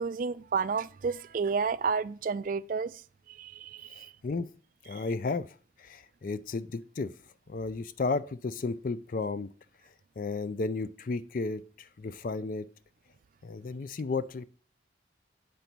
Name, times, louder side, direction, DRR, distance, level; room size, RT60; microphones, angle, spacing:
voice 1, 0.0-2.9 3.4-4.1, right 5 dB, 45° right, 0.3 m, -31 dB
voice 2, 4.9-5.5 5.8-7.1 7.5-9.5 10.2-12.7 13.4-14.5, left 3 dB, 45° left, 0.4 m, -33 dB
8.4 x 3.9 x 6.0 m
head